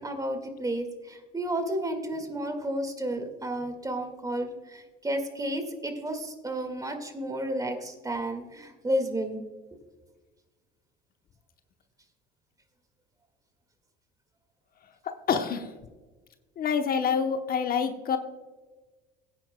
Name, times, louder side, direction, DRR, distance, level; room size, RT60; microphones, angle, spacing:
voice 1, 0.0-9.4, right 1 dB, 15° right, 6 dB, 1.9 m, -32 dB
voice 2, 15.0-15.7 16.6-18.2, left 6 dB, 45° left, 7 dB, 0.9 m, -27 dB
17.5 x 9.4 x 2.2 m, 1.3 s
supercardioid pair, 85°, 21 cm